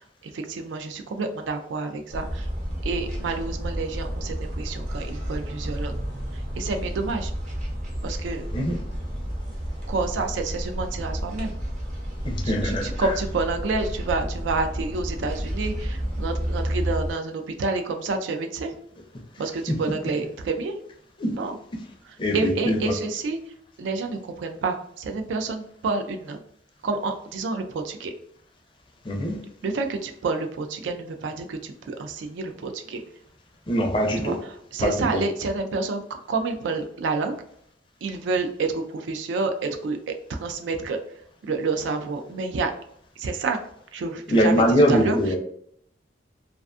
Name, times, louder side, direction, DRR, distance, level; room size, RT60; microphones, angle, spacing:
voice 1, 0.2-2.5 2.8-5.9 6.3-7.3 8.0-8.4 9.9-11.6 12.4-18.7 19.4-20.7 21.3-21.6 22.0-23.4 23.8-26.4 26.8-28.1 29.6-33.0 34.2-37.3 38.0-41.0 41.4-42.7 43.2-43.6 43.9-44.6 44.9-45.2, right 3 dB, 90° right, 6 dB, 0.3 m, -29 dB
sound 1, 2.1-17.1, equal, 40° right, 0.6 m, -31 dB
voice 2, 12.2-13.1 19.7-19.8 21.2-21.5 22.2-22.9 29.0-29.4 33.7-34.4 34.8-35.2 44.3-45.4, equal, 25° left, 2 dB, 0.4 m, -23 dB
2.4 x 2.3 x 2.4 m, 0.67 s
head